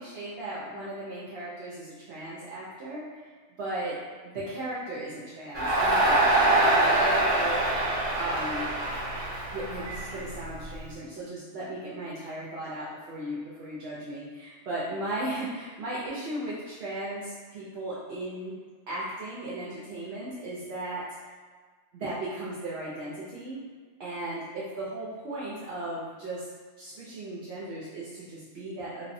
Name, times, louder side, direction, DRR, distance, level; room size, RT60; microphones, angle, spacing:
voice 1, 0.0-3.3 3.6-4.0 4.2-7.6 8.2-8.7 9.5-18.5 18.9-21.0 21.9-23.6 24.0-26.5 26.8-29.1, right 1 dB, 65° right, -8 dB, 0.8 m, -36 dB
Crowd, 5.5-10.7, right 1 dB, 35° right, 0.5 m, -24 dB
3.2 x 2.0 x 2.6 m, 1.5 s
omnidirectional pair, 1.2 m